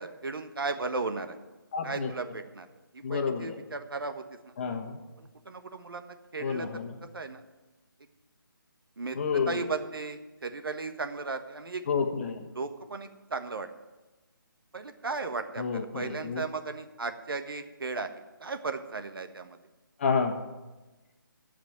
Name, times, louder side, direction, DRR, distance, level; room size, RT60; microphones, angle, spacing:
voice 1, 0.0-1.4 1.8-2.7 2.9-4.5 5.2-6.7 7.1-7.4 9.0-11.8 12.5-13.7 14.7-18.1 18.4-19.6, right 4 dB, 80° right, 7 dB, 1.4 m, -36 dB
voice 2, 1.7-2.1 3.0-3.6 4.6-5.0 6.4-7.0 9.1-9.6 11.9-12.5 15.6-16.4 20.0-20.4, left 5 dB, 35° left, 4 dB, 1.4 m, -30 dB
15.5 x 5.2 x 9.2 m, 1.1 s
hypercardioid pair, 165°, 12 cm